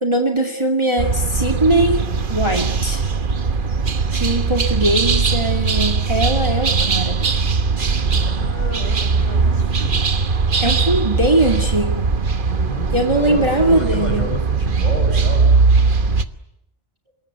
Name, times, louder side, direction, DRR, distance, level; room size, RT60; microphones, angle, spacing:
voice 1, 0.0-2.0 2.3-3.1 4.1-7.2 10.6-12.1 12.9-14.3, right 1 dB, 25° right, 3 dB, 2.4 m, -20 dB
sound 1, 1.0-16.3, right 4 dB, 50° right, 1.3 m, -19 dB
voice 2, 7.8-10.1 12.5-15.5, equal, 40° left, 3 dB, 8.0 m, -30 dB
26.0 x 21.0 x 9.5 m, 0.81 s
omnidirectional pair, 1.1 m